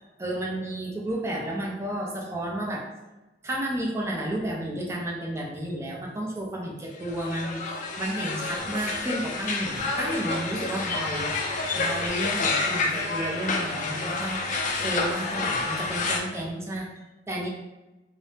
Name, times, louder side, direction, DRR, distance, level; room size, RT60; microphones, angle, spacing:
voice 1, 0.2-2.9 3.4-7.6 8.0-11.4 11.8-14.4 14.8-16.9 17.3-17.5, right 1 dB, 15° right, -2 dB, 0.5 m, -31 dB
sound 1, 7.0-16.2, left 3 dB, 45° left, 0.4 m, -29 dB
3.2 x 2.0 x 2.7 m, 1.1 s
head